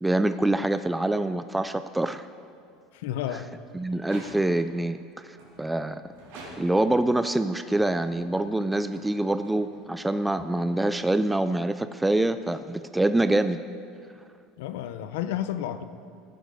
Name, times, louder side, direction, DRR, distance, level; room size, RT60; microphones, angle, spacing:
voice 1, 0.0-2.3 3.3-3.4 3.7-6.0 6.6-13.6, right 2 dB, 5° right, 11 dB, 0.3 m, -25 dB
voice 2, 2.9-3.5 14.6-15.8, left 11 dB, 85° left, 11 dB, 0.7 m, -31 dB
sound 1, 3.9-4.8 5.3-7.0 7.7-11.3, right 2 dB, 85° right, 4.2 m, -49 dB
14.5 x 10.5 x 5.4 m, 2.3 s
cardioid pair, 155°, 0 cm